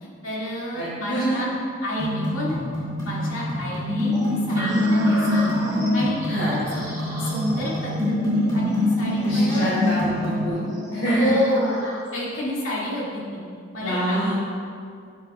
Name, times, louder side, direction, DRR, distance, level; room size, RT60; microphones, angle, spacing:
voice 1, 0.2-1.5 1.8-2.6 3.0-9.7 11.1-11.8 12.1-13.4 13.7-14.3, equal, 75° left, -6 dB, 2.3 m, -29 dB
voice 2, 0.7-1.4 6.3-6.5 9.2-11.3 13.8-14.3, right 1 dB, 60° left, -9 dB, 2.3 m, -25 dB
sound 1, 2.0-10.5, left 1 dB, 20° left, 2.2 m, -24 dB
sound 2, 4.1-12.3, equal, 15° right, 1.2 m, -36 dB
9.9 x 9.8 x 2.4 m, 2.3 s
head